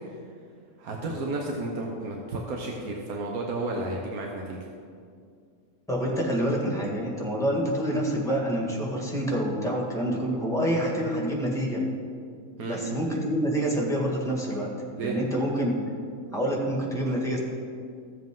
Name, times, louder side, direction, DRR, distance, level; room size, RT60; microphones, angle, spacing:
voice 1, 0.8-4.6 12.6-12.8 14.9-15.1, right 2 dB, 90° right, -1 dB, 1.4 m, -32 dB
voice 2, 5.9-11.8 12.7-14.7 15.0-15.9 16.3-17.4, equal, ahead, -2 dB, 1.7 m, -27 dB
14.5 x 7.4 x 3.8 m, 2.3 s
omnidirectional pair, 1.5 m